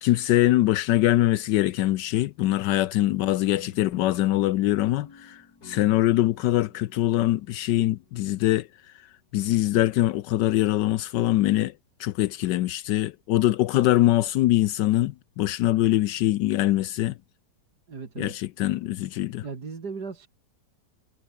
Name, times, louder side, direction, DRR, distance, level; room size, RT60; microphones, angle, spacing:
voice 1, 0.0-8.7 9.3-11.7 12.0-17.2 18.2-19.4, left 15 dB, 80° left, 1.2 m, -23 dB
sound 1, 3.4-8.6, left 4 dB, 60° left, 3.8 m, -50 dB
voice 2, 17.9-18.3 19.4-20.3, right 5 dB, 65° right, 3.1 m, -36 dB
omnidirectional pair, 1.9 m